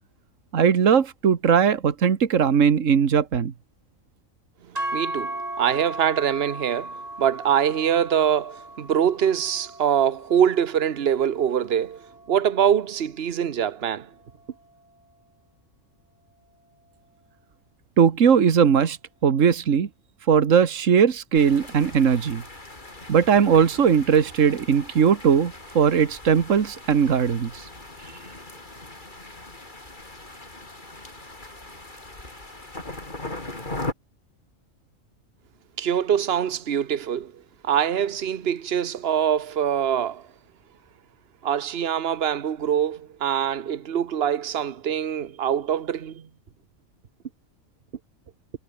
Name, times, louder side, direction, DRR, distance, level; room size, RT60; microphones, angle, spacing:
voice 1, 0.5-3.5 18.0-19.0 19.2-19.9 20.3-22.4 23.1-27.5, right 7 dB, 70° right, 1.8 m, -19 dB
sound 1, 4.8-13.0, right 1 dB, 30° right, 4.1 m, -37 dB
voice 2, 4.9-12.0 12.3-14.1 35.8-37.3 37.6-40.2 41.4-46.3, right 9 dB, 50° right, 1.2 m, -24 dB
sound 2, 21.3-33.9, left 2 dB, 35° left, 3.8 m, -39 dB
omnidirectional pair, 1.4 m